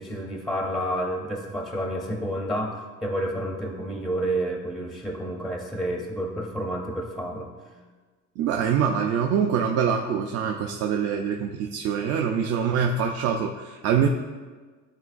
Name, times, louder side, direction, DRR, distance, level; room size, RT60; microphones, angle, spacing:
voice 1, 0.0-7.5, right 1 dB, ahead, 2 dB, 0.4 m, -30 dB
voice 2, 8.4-14.1, right 7 dB, 55° right, 3 dB, 0.4 m, -24 dB
11.0 x 3.8 x 2.4 m, 1.4 s
cardioid pair, 160°, 31 cm